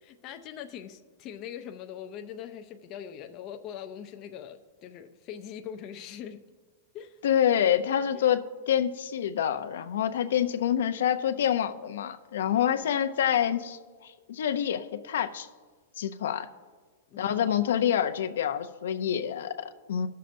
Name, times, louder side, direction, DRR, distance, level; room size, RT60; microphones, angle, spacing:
voice 1, 0.0-6.4 6.9-7.2 8.1-8.2 12.6-12.8 17.1-17.5, left 9 dB, 30° left, 6 dB, 0.4 m, -42 dB
voice 2, 7.2-15.5 16.0-16.5 17.2-20.1, left 9 dB, 80° left, 9 dB, 0.5 m, -27 dB
18.0 x 6.5 x 2.6 m, 1.4 s
supercardioid pair, 170°, 0 cm